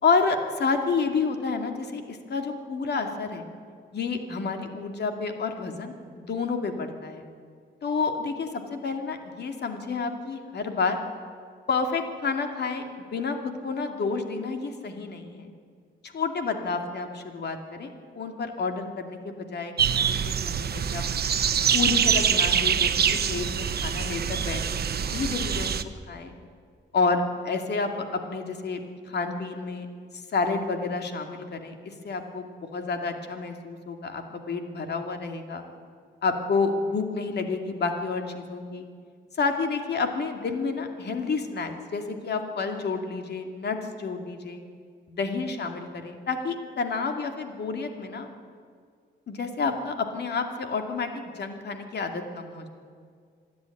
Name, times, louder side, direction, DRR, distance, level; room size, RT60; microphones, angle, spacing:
voice 1, 0.0-3.4 3.9-7.3 7.8-11.0 11.7-15.5 16.0-21.0 21.7-25.7 26.1-26.3 26.9-28.8 29.1-29.9 30.1-35.6 36.2-38.8 39.4-44.6 45.1-48.3 49.3-52.7, left 4 dB, 60° left, 5 dB, 2.5 m, -30 dB
sound 1, 19.8-25.8, right 7 dB, 55° right, 1.0 m, -25 dB
26.5 x 10.5 x 9.9 m, 2.1 s
cardioid pair, 90°, 19 cm